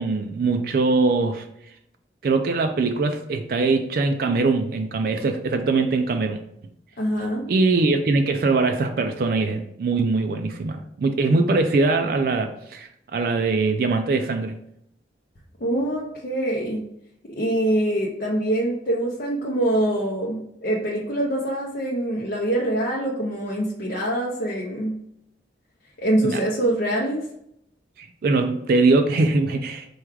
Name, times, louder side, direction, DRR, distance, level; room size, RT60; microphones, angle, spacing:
voice 1, 0.0-1.5 2.2-6.4 7.5-14.5 26.2-26.4 28.0-29.9, right 3 dB, 55° right, 5 dB, 0.3 m, -22 dB
voice 2, 7.0-7.4 15.6-16.8 17.3-24.9 26.0-27.3, right 1 dB, 55° left, -4 dB, 0.6 m, -24 dB
4.6 x 2.3 x 4.6 m, 0.76 s
head